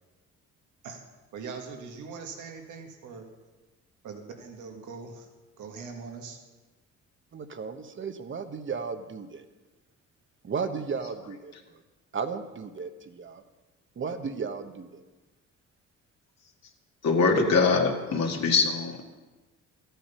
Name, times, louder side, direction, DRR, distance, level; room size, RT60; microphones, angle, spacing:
voice 1, 1.3-3.3 4.0-5.3 5.6-6.4, right 5 dB, 85° right, 3 dB, 1.8 m, -41 dB
voice 2, 7.3-9.4 10.4-11.8 12.1-13.4 14.0-15.0, right 5 dB, 40° right, 9 dB, 1.1 m, -35 dB
voice 3, 17.0-19.1, left 4 dB, 60° left, 1 dB, 2.1 m, -23 dB
13.5 x 9.2 x 5.6 m, 1.2 s
cardioid pair, 90°, 30 cm